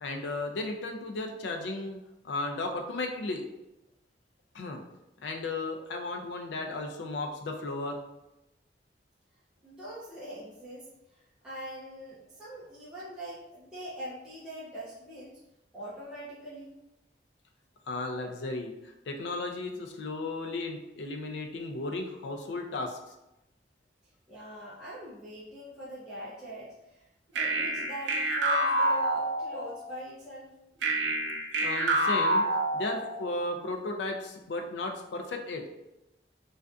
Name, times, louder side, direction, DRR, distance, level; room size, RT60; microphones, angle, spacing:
voice 1, 0.0-2.0 2.2-3.5 4.5-4.8 5.2-8.0 17.9-23.0 31.6-32.4 32.7-35.6, left 2 dB, 80° left, 3 dB, 0.4 m, -35 dB
voice 2, 9.6-15.4 15.7-16.7 24.3-27.1 27.3-30.5, equal, 5° right, -10 dB, 0.5 m, -43 dB
sound 1, 27.4-29.9 30.8-33.3, right 1 dB, 85° right, 0.4 m, -28 dB
2.5 x 2.4 x 2.3 m, 0.91 s
head